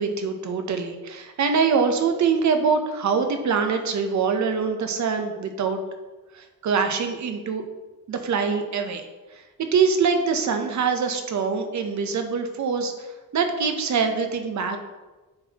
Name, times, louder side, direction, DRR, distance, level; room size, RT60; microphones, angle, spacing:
voice 1, 0.0-5.8 6.3-7.6 8.1-9.0 9.3-9.4 9.7-14.8, right 5 dB, 55° right, 6 dB, 0.8 m, -24 dB
9.6 x 4.1 x 2.9 m, 1.2 s
wide cardioid pair, 155°, 34 cm